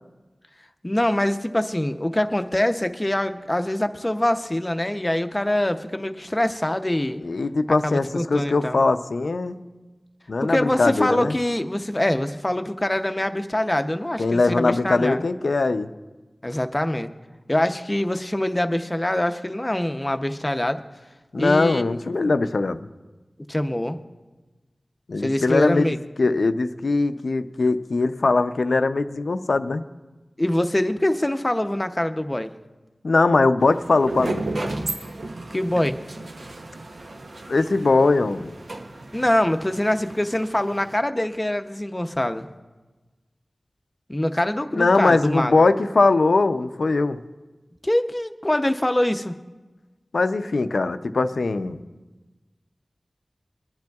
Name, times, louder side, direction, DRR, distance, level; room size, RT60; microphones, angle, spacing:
voice 1, 0.8-7.2 7.7-8.8 10.4-15.2 16.4-17.1 17.5-20.8 21.4-21.9 23.5-24.0 25.2-26.0 30.4-32.5 35.5-36.0 39.1-42.5 44.1-45.6 47.8-49.3, left 1 dB, 25° left, 8 dB, 0.6 m, -24 dB
voice 2, 7.2-9.6 10.3-11.4 14.2-15.9 21.3-22.9 25.1-29.8 33.0-34.5 37.5-38.5 44.7-47.2 50.1-51.8, left 3 dB, 85° left, 10 dB, 0.5 m, -21 dB
sound 1, 33.6-41.0, right 2 dB, 80° right, 0.8 m, -34 dB
24.0 x 10.5 x 2.3 m, 1.2 s
wide cardioid pair, 55°, 0 cm